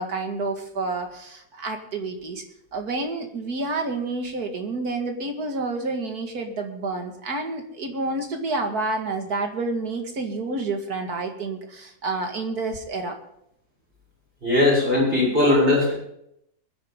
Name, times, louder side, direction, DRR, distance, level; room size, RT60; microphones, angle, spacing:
voice 1, 0.0-2.4 2.7-13.2, right 3 dB, 85° right, 4 dB, 2.5 m, -29 dB
voice 2, 14.4-15.9, left 2 dB, 35° right, -5 dB, 7.8 m, -19 dB
22.5 x 10.5 x 3.8 m, 0.75 s
omnidirectional pair, 1.6 m